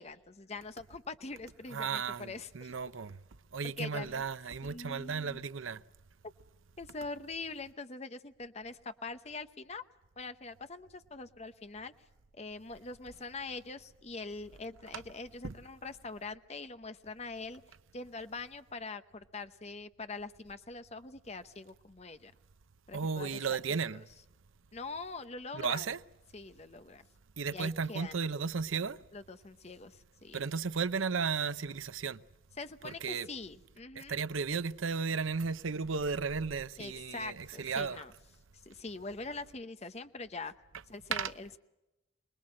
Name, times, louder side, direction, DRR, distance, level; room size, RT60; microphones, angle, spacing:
voice 1, 0.0-2.7 3.8-4.2 4.6-5.4 6.8-9.8 10.2-11.9 12.4-17.6 17.9-22.3 22.9-23.6 23.9-24.0 24.7-25.9 26.3-27.0 27.5-28.2 29.1-30.4 32.6-34.2 36.8-38.1 38.7-40.5 40.9-41.6, left 3 dB, 35° left, 0.8 m, -43 dB
voice 2, 1.7-3.2 3.5-5.8 14.9-15.0 15.4-15.6 22.9-24.1 25.5-26.0 27.4-29.0 30.3-32.2 32.8-33.3 33.9-38.1 41.1-41.3, right 5 dB, 85° right, 0.7 m, -34 dB
25.5 x 20.0 x 7.6 m
head